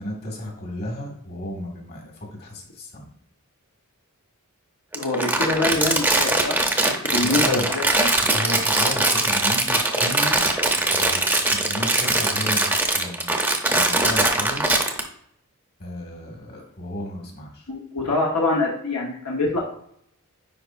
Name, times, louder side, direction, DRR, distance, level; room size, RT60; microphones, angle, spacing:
voice 1, 0.0-3.0 7.2-7.7 8.0-13.3 13.7-14.7 15.8-17.7, left 1 dB, 45° left, 0 dB, 2.0 m, -34 dB
voice 2, 4.9-6.6 6.8-8.1 17.7-19.6, left 2 dB, 75° left, -3 dB, 1.2 m, -25 dB
Crumpling crinkling, 4.9-15.0, right 2 dB, 10° right, 0.7 m, -21 dB
9.9 x 4.6 x 2.6 m, 0.68 s
head